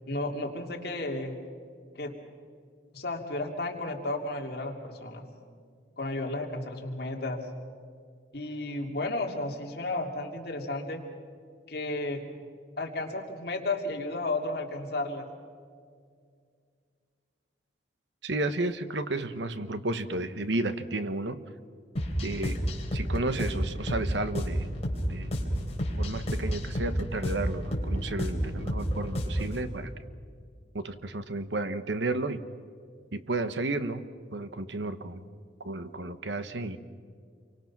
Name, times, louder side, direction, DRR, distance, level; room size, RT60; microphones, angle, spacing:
voice 1, 0.1-1.4 2.0-2.1 2.9-5.2 6.0-7.4 8.3-11.0 11.7-12.2 12.8-15.3, left 2 dB, 55° left, 2 dB, 2.6 m, -33 dB
voice 2, 18.2-21.4 22.2-22.6 22.9-24.7 25.1-25.4 26.0-29.9 30.7-32.4 33.1-34.1 34.3-35.2 35.6-36.8, right 2 dB, 75° right, 11 dB, 1.1 m, -32 dB
sound 1, 22.0-29.6, equal, 35° left, 3.6 m, -31 dB
28.5 x 24.0 x 6.0 m, 2.2 s
head